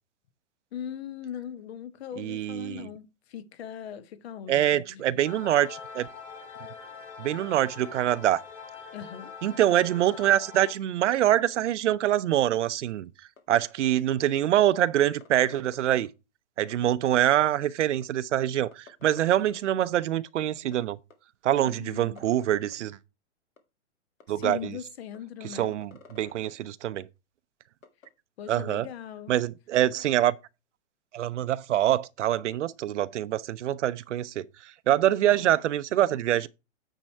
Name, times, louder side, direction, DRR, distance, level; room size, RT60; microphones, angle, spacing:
voice 1, 0.7-5.2 8.9-9.3 21.7-22.2 24.3-25.7 28.4-29.3 35.4-35.5, left 9 dB, 55° left, 1.0 m, -40 dB
voice 2, 2.2-2.9 4.5-6.1 7.2-8.4 9.4-13.1 13.5-16.1 16.6-21.0 21.4-23.0 24.3-24.6 25.5-27.1 28.5-28.9 29.3-30.3 31.1-34.5 34.9-36.5, right 12 dB, 70° right, 0.6 m, -25 dB
sound 1, 5.2-10.7, left 6 dB, 15° left, 1.8 m, -43 dB
sound 2, 13.4-13.5 13.9-14.0 14.3-16.1 16.7-16.9 17.6-18.0 18.4-18.5 18.7-20.0 20.2-20.3 20.6-20.8 21.1-21.2 21.5-22.7 23.6-23.7 24.2-24.3 24.6-24.7 25.1-25.2 25.5-26.5 27.8-28.1, left 5 dB, 90° left, 1.8 m, -51 dB
9.1 x 4.6 x 4.4 m
hypercardioid pair, 140°, 37 cm